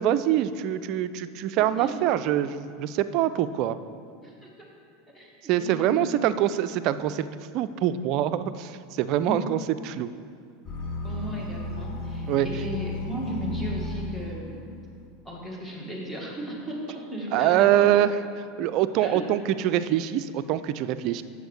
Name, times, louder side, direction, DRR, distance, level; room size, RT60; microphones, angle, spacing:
voice 1, 0.0-3.8 5.5-7.3 7.5-10.1 12.3-12.5 17.3-18.1 18.6-21.2, right 12 dB, 55° right, 13 dB, 0.4 m, -24 dB
voice 2, 1.5-2.0 4.2-4.7 5.1-6.3 9.2-9.5 11.0-14.7 15.2-17.9 19.0-19.2, equal, 10° left, -3 dB, 2.2 m, -35 dB
sound 1, 10.7-14.4, equal, 40° left, 1.8 m, -33 dB
8.0 x 6.9 x 4.9 m, 2.2 s
hypercardioid pair, 85°, 0 cm